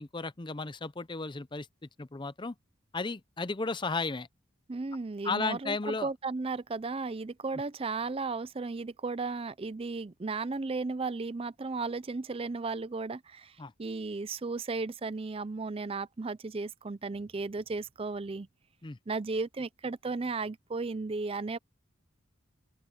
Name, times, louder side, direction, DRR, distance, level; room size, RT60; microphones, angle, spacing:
voice 1, 0.0-1.7 2.0-2.5 2.9-4.3 5.2-6.1 13.6-13.7 18.8-19.0, left 3 dB, 25° left, 0.6 m, -34 dB
voice 2, 4.7-18.5 19.1-21.6, right 3 dB, 30° right, 0.5 m, -35 dB
open air
head